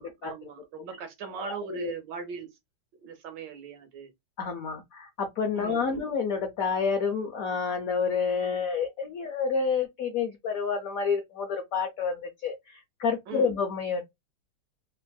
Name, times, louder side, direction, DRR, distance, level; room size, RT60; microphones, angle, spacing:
voice 1, 0.0-2.6 3.0-4.1 5.5-6.0 13.3-13.5, right 5 dB, 70° right, 1.2 m, -40 dB
voice 2, 1.4-1.9 4.4-14.0, left 5 dB, 90° left, 0.7 m, -29 dB
3.5 x 2.5 x 2.2 m
omnidirectional pair, 2.3 m